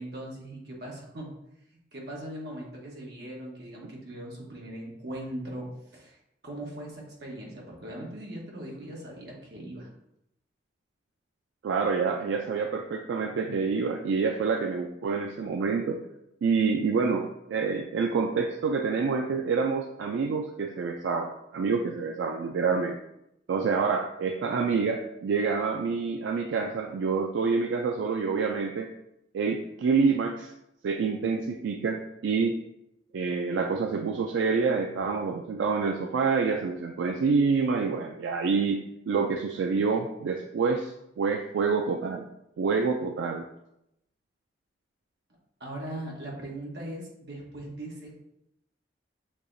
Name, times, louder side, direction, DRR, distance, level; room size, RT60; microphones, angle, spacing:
voice 1, 0.0-1.4 1.9-6.2 6.4-9.9 45.6-48.1, right 1 dB, 60° right, -2 dB, 1.1 m, -39 dB
voice 2, 11.6-16.0 16.4-23.0 23.5-28.9 29.3-30.5 30.8-32.6 33.1-42.3 42.6-43.5, right 5 dB, 80° right, 3 dB, 0.3 m, -27 dB
6.5 x 2.8 x 2.6 m, 0.82 s
head